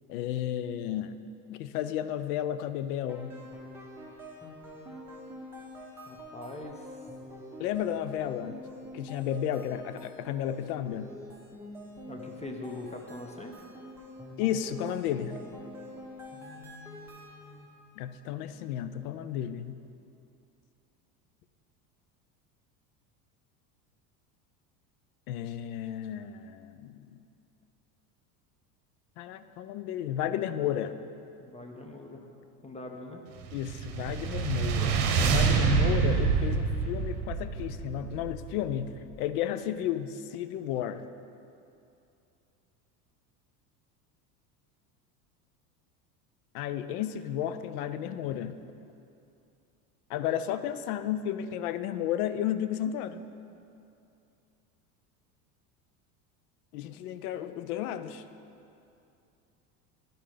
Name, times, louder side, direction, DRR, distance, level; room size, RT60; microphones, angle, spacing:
voice 1, 0.1-1.2 1.5-3.4 7.6-8.6 8.9-11.1 14.4-15.4 18.0-19.8 25.3-27.2 29.2-31.0 33.5-41.1 46.5-48.6 50.1-53.2 56.7-58.2, left 10 dB, 75° left, 12 dB, 0.6 m, -33 dB
sound 1, 3.1-17.8, left 1 dB, 5° right, 1.3 m, -46 dB
voice 2, 6.1-6.9 12.0-13.7 16.3-17.7 31.4-32.3 32.6-33.2, left 2 dB, 15° left, 2 dB, 0.7 m, -43 dB
sound 2, 33.4-38.9, right 5 dB, 60° right, 1.0 m, -27 dB
10.0 x 4.4 x 4.9 m, 2.6 s
hypercardioid pair, 90°, 45 cm